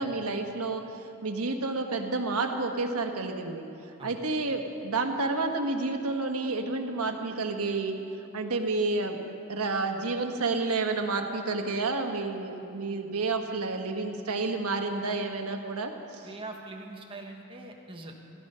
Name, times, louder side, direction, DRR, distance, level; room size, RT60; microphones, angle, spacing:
voice 1, 0.0-3.6 4.0-8.0 8.3-9.2 9.5-16.3, right 3 dB, 85° right, 4 dB, 1.4 m, -30 dB
voice 2, 16.2-18.1, right 2 dB, 25° right, 1 dB, 1.4 m, -42 dB
15.5 x 15.0 x 5.6 m, 2.8 s
head